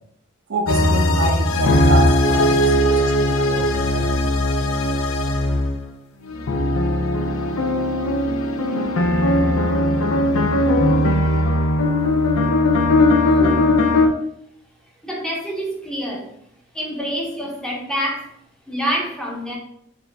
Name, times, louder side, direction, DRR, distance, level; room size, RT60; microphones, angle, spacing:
voice 1, 0.5-4.3, right 2 dB, 55° right, 4 dB, 0.5 m, -27 dB
sound 1, 0.7-5.9 6.3-14.1, left 1 dB, 75° left, 0.5 m, -18 dB
voice 2, 13.4-13.7 15.0-16.3 16.7-18.3 18.7-19.6, equal, 5° left, -2 dB, 0.8 m, -27 dB
4.2 x 2.7 x 3.4 m, 0.71 s
head